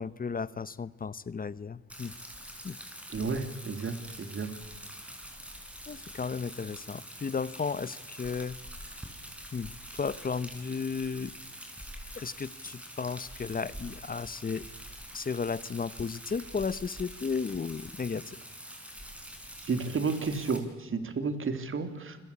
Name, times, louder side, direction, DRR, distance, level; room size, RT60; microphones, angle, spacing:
voice 1, 0.0-2.1 2.6-2.8 5.9-8.6 9.5-11.3 12.1-14.6 15.1-18.4, left 5 dB, 30° left, 18 dB, 0.9 m, -34 dB
Rain, 1.9-20.6, equal, 5° right, 6.0 m, -45 dB
voice 2, 3.1-4.5 19.6-22.2, right 4 dB, 45° right, 9 dB, 3.6 m, -32 dB
28.5 x 22.5 x 8.7 m, 1.2 s
cardioid pair, 90°, 30 cm